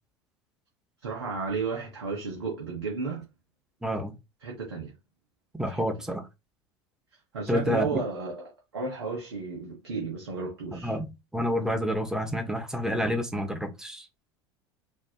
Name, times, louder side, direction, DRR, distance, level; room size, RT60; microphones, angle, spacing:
voice 1, 1.0-3.2 4.4-4.9 5.7-5.8 7.3-11.0, right 4 dB, 80° right, 1.0 m, -33 dB
voice 2, 3.8-4.1 5.6-6.2 7.5-8.0 10.7-11.1 11.3-14.1, equal, 5° right, 1.1 m, -29 dB
4.3 x 2.6 x 2.8 m
figure-of-eight pair, 75°, 14 cm